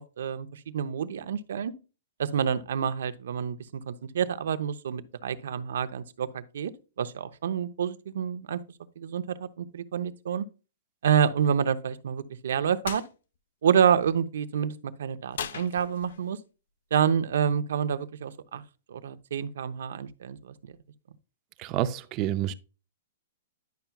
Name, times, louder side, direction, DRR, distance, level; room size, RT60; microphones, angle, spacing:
voice 1, 0.0-1.7 2.2-6.7 7.0-8.6 9.0-10.5 11.0-13.0 13.6-16.4 16.9-18.6 18.9-20.5, right 8 dB, 75° right, 0.8 m, -28 dB
sound 1, 12.8-13.1 15.3-16.3, left 8 dB, 70° left, 0.7 m, -37 dB
voice 2, 21.6-22.5, right 12 dB, 30° right, 0.4 m, -28 dB
10.5 x 5.8 x 2.3 m
hypercardioid pair, 165°, 0 cm